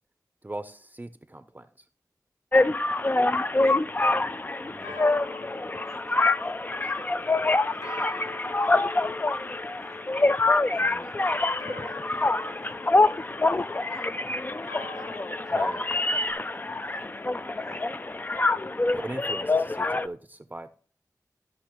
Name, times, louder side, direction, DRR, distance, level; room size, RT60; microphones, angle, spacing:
voice 1, 0.4-1.9 4.7-5.0 10.8-11.0 15.5-15.8 18.9-20.7, right 2 dB, 25° right, 0.5 m, -39 dB
sound 1, 2.5-20.1, left 2 dB, 30° left, 0.3 m, -26 dB
voice 2, 2.7-4.1 4.7-5.2 5.8-8.4 8.6-9.9 10.7-14.4 14.8-17.1 17.6-18.0, left 1 dB, 50° left, 4.5 m, -53 dB
funeral bells, 4.8-7.2 7.8-14.0 14.7-16.3, left 2 dB, 70° left, 1.0 m, -43 dB
13.5 x 5.7 x 3.0 m
wide cardioid pair, 45°, 7 cm